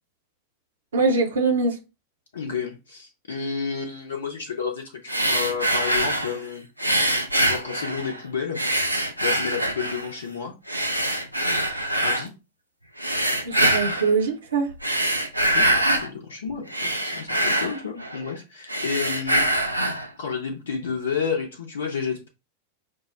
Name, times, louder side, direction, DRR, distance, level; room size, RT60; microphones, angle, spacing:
voice 1, 0.9-1.8 13.4-14.7, right 4 dB, 65° right, 0.7 m, -22 dB
voice 2, 2.3-6.7 7.4-8.6 9.2-10.6 12.0-12.3 15.4-19.5 20.2-22.3, left 6 dB, 65° left, 0.6 m, -31 dB
sound 1, 5.1-6.4 6.8-8.2 8.6-10.1 10.7-12.3 13.0-14.1 14.7-16.1 16.5-18.3 18.6-20.1, right 1 dB, 90° right, 0.4 m, -24 dB
5.2 x 2.0 x 2.4 m
figure-of-eight pair, 90°, 0 cm